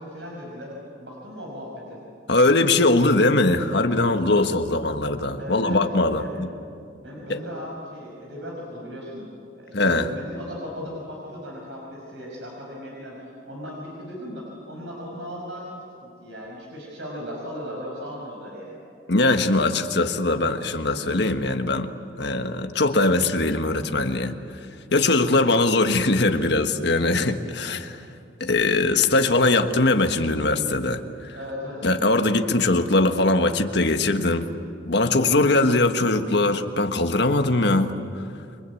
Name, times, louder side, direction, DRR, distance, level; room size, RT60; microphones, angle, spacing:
voice 1, 0.0-2.0 5.4-5.8 6.1-6.3 7.0-9.3 9.5-18.8 31.3-31.9, equal, 70° right, -2 dB, 5.8 m, -37 dB
voice 2, 2.3-6.5 7.3-7.4 9.7-10.1 19.1-21.9 22.2-24.3 24.9-28.0 28.4-31.0 31.8-34.5 34.8-37.9, left 2 dB, 60° left, 7 dB, 1.5 m, -21 dB
29.5 x 23.5 x 8.5 m, 2.5 s
head